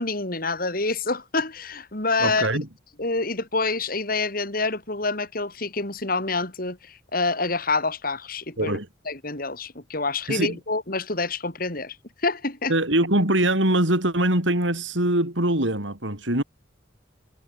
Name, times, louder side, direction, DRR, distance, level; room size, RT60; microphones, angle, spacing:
voice 1, 0.0-2.5 3.0-8.8 9.1-12.0 12.2-12.7, left 3 dB, 50° left, 3.9 m, -27 dB
voice 2, 2.2-2.7 8.6-8.9 10.3-10.6 12.7-16.4, right 1 dB, 80° right, 6.9 m, -23 dB
head